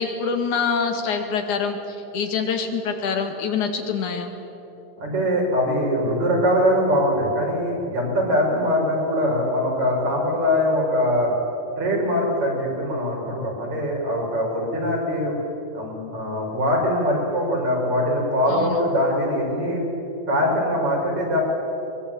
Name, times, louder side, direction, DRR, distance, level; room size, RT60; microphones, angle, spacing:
voice 1, 0.0-4.3 18.5-18.8, left 5 dB, 75° left, 4 dB, 3.5 m, -25 dB
voice 2, 5.0-11.3 11.8-15.4 15.7-19.8 20.3-21.4, equal, 65° right, -2 dB, 7.2 m, -22 dB
22.5 x 22.0 x 9.0 m, 3.0 s
omnidirectional pair, 3.5 m